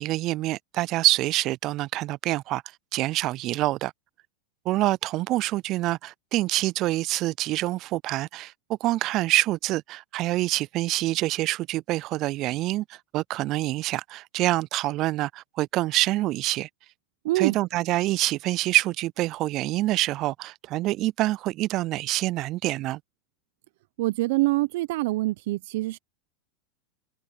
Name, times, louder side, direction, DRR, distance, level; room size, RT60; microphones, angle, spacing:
voice 1, 0.0-2.6 2.9-3.9 4.7-16.7 17.4-23.0, right 17 dB, 50° right, 0.4 m, -26 dB
voice 2, 17.2-17.6 24.0-26.0, right 19 dB, 65° right, 0.8 m, -25 dB
hypercardioid pair, 95°, 0 cm